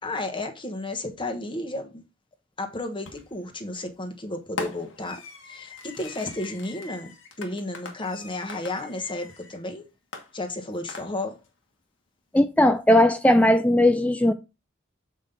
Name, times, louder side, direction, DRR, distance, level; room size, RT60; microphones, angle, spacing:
voice 1, 0.0-2.0 2.6-7.1 7.4-9.9 10.3-11.4, left 2 dB, 25° left, 1.3 m, -33 dB
Fireworks, 3.0-3.5 4.6-9.6 10.1-11.5, left 4 dB, 85° left, 1.6 m, -41 dB
voice 2, 12.3-14.3, left 1 dB, 5° left, 0.3 m, -18 dB
7.3 x 5.3 x 3.8 m
head